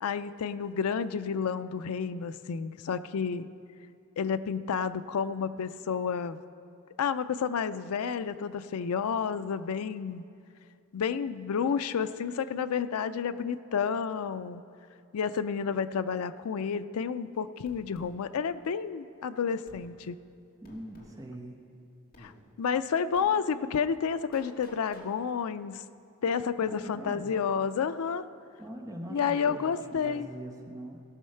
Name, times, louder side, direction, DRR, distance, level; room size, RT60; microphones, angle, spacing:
voice 1, 0.0-3.5 4.2-6.4 7.0-10.2 10.9-14.6 15.1-20.2 22.2-22.3 22.6-25.8 26.2-28.2 29.1-30.3, left 6 dB, 80° left, 12 dB, 0.4 m, -30 dB
sound 1, 17.7-18.1 19.7-19.9 20.6-21.2 22.1-22.3 23.2-23.3 24.3-25.1, left 1 dB, 45° left, 1.7 m, -51 dB
voice 2, 20.6-21.6 26.6-27.3 28.6-31.0, right 1 dB, 15° right, 0 dB, 1.0 m, -42 dB
17.5 x 6.3 x 5.6 m, 2.4 s
head